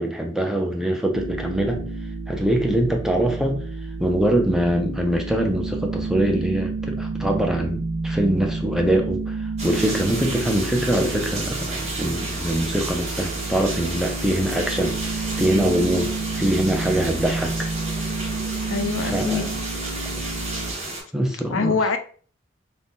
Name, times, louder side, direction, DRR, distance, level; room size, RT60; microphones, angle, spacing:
voice 1, 0.0-1.8 2.3-3.6 4.0-17.7 19.0-19.5 21.1-21.7, right 1 dB, 5° right, 2 dB, 0.5 m, -23 dB
sound 1, 1.1-20.7, right 3 dB, 75° right, 0.4 m, -30 dB
sound 2, 9.6-21.0, right 2 dB, 35° right, 1.1 m, -32 dB
voice 2, 18.7-19.5 21.5-22.0, left 4 dB, 75° left, 8 dB, 0.4 m, -24 dB
2.6 x 2.2 x 3.5 m, 0.43 s
head